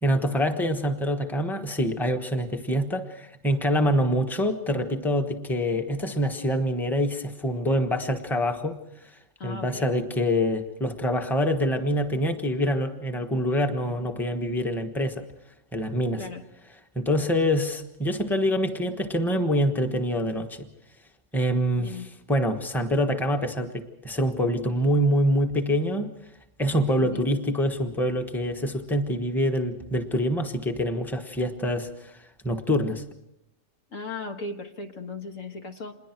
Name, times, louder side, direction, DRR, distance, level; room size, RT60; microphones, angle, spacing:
voice 1, 0.0-8.7 9.4-15.2 15.7-16.3 16.9-20.7 21.3-22.0 22.3-26.1 26.6-32.2 32.4-33.0, equal, ahead, 5 dB, 1.2 m, -25 dB
voice 2, 9.4-9.9 16.2-16.4 21.8-22.1 27.0-27.3 33.9-36.0, left 3 dB, 80° left, 4 dB, 1.9 m, -37 dB
27.0 x 21.5 x 4.6 m, 0.84 s
omnidirectional pair, 1.4 m